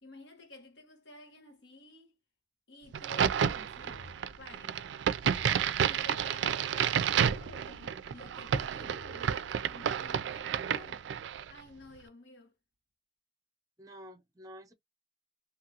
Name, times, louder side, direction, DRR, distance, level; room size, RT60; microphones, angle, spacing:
voice 1, 0.0-2.2 2.7-4.1 4.4-4.8 5.8-11.1 11.5-12.5, left 2 dB, 85° left, 1.2 m, -52 dB
Crack, 2.9-11.5, right 8 dB, 80° right, 0.3 m, -31 dB
sound 1, 3.9-4.4 5.3-5.8 7.3-7.9 8.8-9.5, left 2 dB, 50° left, 0.4 m, -52 dB
voice 2, 13.8-14.7, equal, 20° right, 0.7 m, -50 dB
2.9 x 2.4 x 2.7 m
head